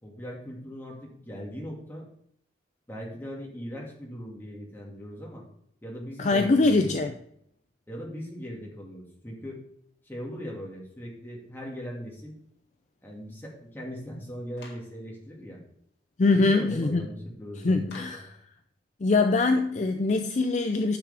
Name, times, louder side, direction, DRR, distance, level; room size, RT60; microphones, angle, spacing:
voice 1, 0.0-2.1 2.9-5.5 5.8-7.0 7.9-9.6 10.0-12.4 13.0-15.6 16.3-18.1, equal, 10° left, -3 dB, 2.1 m, -39 dB
voice 2, 6.2-7.1 16.2-17.1 17.6-18.2 19.0-21.0, left 3 dB, 40° left, 7 dB, 0.4 m, -23 dB
Clapping, 14.6-14.9 17.9-18.3, left 3 dB, 60° left, 1.9 m, -47 dB
10.5 x 6.6 x 3.4 m, 0.70 s
head